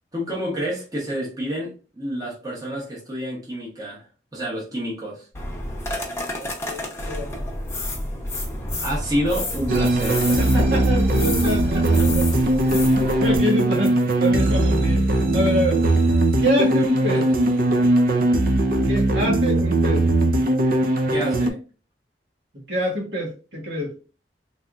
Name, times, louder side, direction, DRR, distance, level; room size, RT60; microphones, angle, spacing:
voice 1, 0.1-5.3 8.8-10.3 11.3-11.9 17.1-17.2 21.1-21.6, equal, 20° right, 0.9 m, -29 dB
sound 1, 5.3-13.4, left 1 dB, 15° left, 0.7 m, -29 dB
voice 2, 6.0-7.3 10.4-12.2 12.7-15.8 16.4-17.3 18.9-20.1 22.7-23.9, equal, 70° right, 1.3 m, -26 dB
sound 2, 9.7-21.5, right 1 dB, 55° right, 0.4 m, -19 dB
3.4 x 2.6 x 2.3 m
head